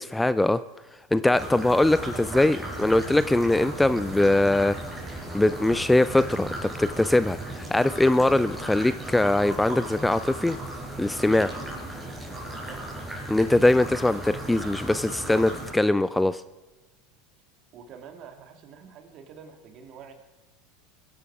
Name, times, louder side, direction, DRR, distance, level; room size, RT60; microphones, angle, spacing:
voice 1, 0.1-0.6 1.1-4.8 5.3-10.6 11.0-11.5 13.3-16.4, left 2 dB, 5° left, 14 dB, 0.5 m, -22 dB
sound 1, 1.3-15.7, right 1 dB, 10° right, 5.3 m, -36 dB
voice 2, 12.4-12.9 17.7-20.1, right 7 dB, 50° right, 6 dB, 2.6 m, -46 dB
22.5 x 10.5 x 4.9 m, 1.2 s
hypercardioid pair, 100°, 0 cm